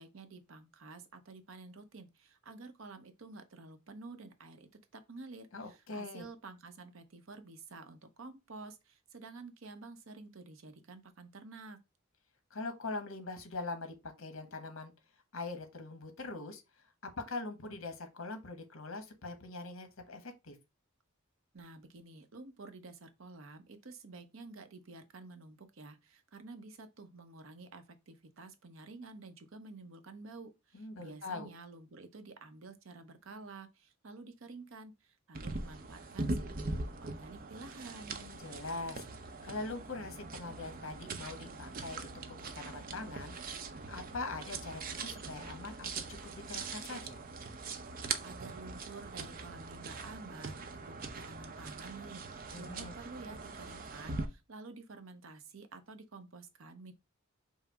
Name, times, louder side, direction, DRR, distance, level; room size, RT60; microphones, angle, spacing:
voice 1, 0.0-11.8 21.5-38.2 48.2-56.9, right 3 dB, 75° right, 0.8 m, -50 dB
voice 2, 5.5-6.3 12.5-14.9 15.3-20.6 30.7-31.5 38.2-43.3 43.6-47.2 52.5-52.9, left 3 dB, 80° left, 1.2 m, -43 dB
sound 1, 35.3-54.3, right 3 dB, 45° right, 0.6 m, -42 dB
5.5 x 2.0 x 4.6 m
head